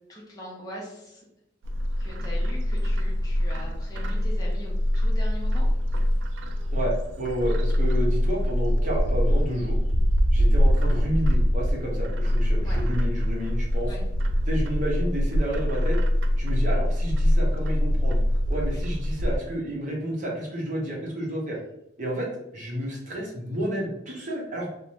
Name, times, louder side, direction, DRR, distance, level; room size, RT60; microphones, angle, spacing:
voice 1, 0.1-1.2 2.0-5.7 12.6-12.8 13.9-14.0 18.7-18.8, equal, 20° left, -4 dB, 0.5 m, -41 dB
Bird, 1.6-19.4, equal, 80° right, 0.3 m, -24 dB
voice 2, 6.7-9.8 10.3-13.9 14.5-16.0 16.4-18.2 18.5-21.6 22.0-22.3 22.5-24.7, equal, 40° right, -3 dB, 0.7 m, -30 dB
2.6 x 2.1 x 3.0 m, 0.85 s
head